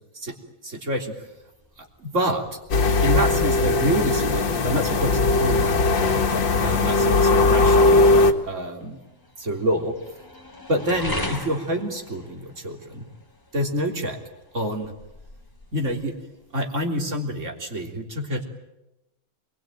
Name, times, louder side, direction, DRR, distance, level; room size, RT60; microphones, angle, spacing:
voice 1, 0.6-1.1 1.8-2.6 3.0-6.1 6.6-8.0 8.5-9.0 9.4-9.9 10.7-13.1 13.5-14.2 14.5-15.0 15.7-16.1 16.5-18.4, equal, 40° right, 3 dB, 3.8 m, -27 dB
sound 1, 1.2-16.7, left 1 dB, 10° left, 3.1 m, -41 dB
sound 2, 2.7-8.3, left 3 dB, 70° left, 2.4 m, -19 dB
27.5 x 21.5 x 9.2 m, 0.93 s
omnidirectional pair, 2.1 m